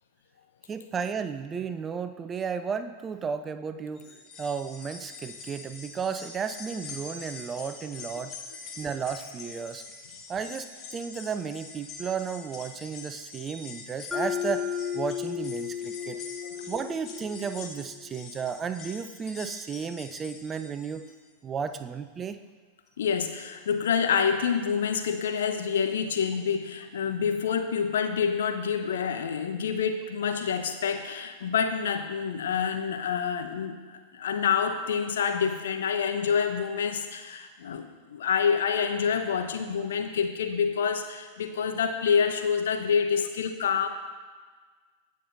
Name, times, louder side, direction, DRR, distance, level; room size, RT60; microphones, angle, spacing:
voice 1, 0.7-4.1 4.4-8.4 8.8-9.8 10.3-16.2 16.7-21.0 21.4-22.4, right 6 dB, 20° right, 10 dB, 0.4 m, -33 dB
sound 1, 4.0-21.3 21.7-21.8 22.9-23.0, left 4 dB, 30° left, 1.3 m, -45 dB
Mallet percussion, 14.1-18.1, left 8 dB, 5° left, 0.8 m, -34 dB
voice 2, 23.0-43.9, left 6 dB, 60° left, 7 dB, 0.8 m, -27 dB
16.0 x 6.7 x 2.6 m, 1.5 s
figure-of-eight pair, 90°, 0 cm